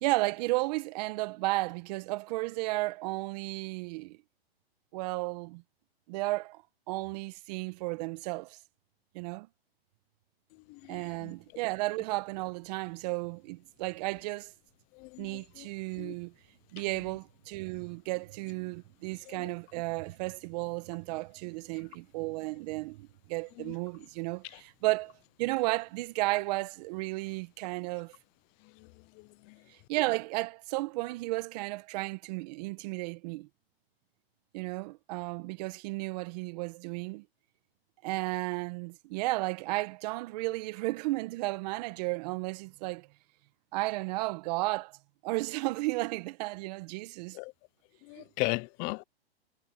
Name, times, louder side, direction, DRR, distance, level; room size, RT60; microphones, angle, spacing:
voice 1, 0.0-4.2 4.9-5.6 6.1-8.6 9.1-9.5 10.9-14.5 15.2-16.3 16.7-25.1 25.4-28.1 29.7-33.5 34.5-37.2 38.0-43.1 43.7-45.0 45.2-47.4 48.2-48.3, right 22 dB, 40° right, 1.4 m, -33 dB
voice 2, 10.7-11.3 15.0-15.7 16.0-16.1 19.3-19.5 23.6-23.7 29.2-29.6 47.3-47.5 48.0-49.0, left 27 dB, 25° left, 0.6 m, -37 dB
hypercardioid pair, 140°, 31 cm